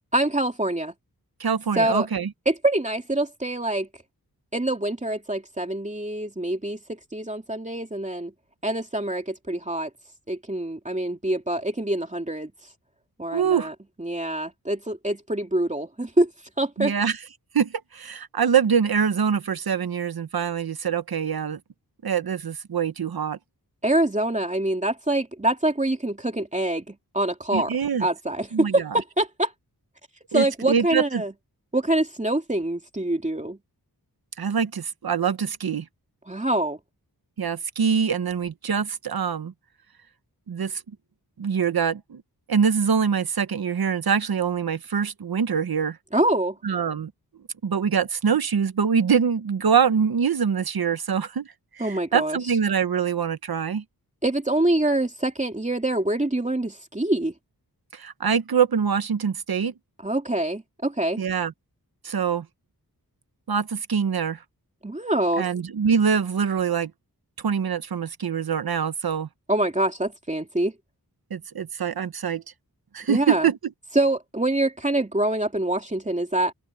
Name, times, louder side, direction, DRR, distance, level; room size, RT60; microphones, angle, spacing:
voice 1, 0.1-0.9 1.8-2.1 2.5-3.9 4.5-8.3 8.6-9.9 10.3-12.5 13.2-16.3 16.6-16.9 23.8-27.7 28.0-29.5 30.3-31.3 31.7-33.6 36.3-36.8 46.1-46.6 51.8-52.4 54.2-57.3 60.0-61.2 64.8-65.5 69.5-70.7 73.1-73.5 73.9-76.5, right 1 dB, 20° right, 2.6 m, -25 dB
voice 2, 1.4-2.3 13.3-13.7 16.8-17.2 17.5-21.6 22.0-23.4 27.5-28.1 28.5-28.7 30.3-31.2 34.4-35.8 37.4-39.5 40.5-40.8 41.4-42.2 42.5-46.0 46.6-47.1 47.6-51.5 51.7-53.8 57.9-59.7 61.2-61.5 62.0-62.5 63.5-64.4 65.4-66.9 67.4-69.3 71.3-72.4 72.9-73.6, right 7 dB, 70° right, 1.0 m, -24 dB
open air
wide cardioid pair, 105°, 37 cm